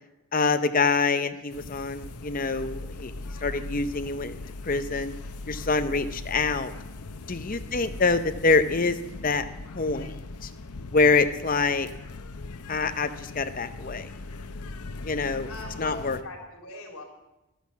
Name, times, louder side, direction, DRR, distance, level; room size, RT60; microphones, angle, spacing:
voice 1, 0.3-3.1 3.4-4.4 4.6-5.1 5.5-6.7 7.3-9.4 9.7-10.1 10.4-10.5 10.9-11.9 12.7-14.1 15.0-15.5 15.8-16.2, left 4 dB, 35° left, 9 dB, 0.7 m, -25 dB
sound 1, 1.5-16.2, left 2 dB, 90° left, 0.8 m, -39 dB
voice 2, 7.4-7.8 15.5-16.0 16.2-17.0, left 2 dB, 70° left, 0 dB, 3.8 m, -42 dB
12.0 x 10.0 x 7.2 m, 0.99 s
head